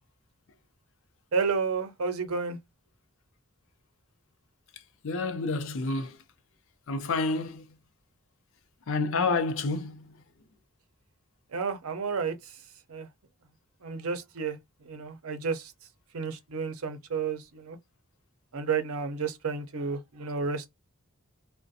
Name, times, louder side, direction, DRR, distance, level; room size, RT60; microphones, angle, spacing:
voice 1, 1.3-2.6 11.5-12.4 12.9-13.1 13.8-14.6 14.8-15.7 16.1-17.8 18.5-20.7, right 5 dB, 80° right, 0.6 m, -31 dB
voice 2, 4.7-6.2 6.9-7.8 8.9-10.2, left 3 dB, 65° left, 0.5 m, -29 dB
2.4 x 2.1 x 2.6 m
head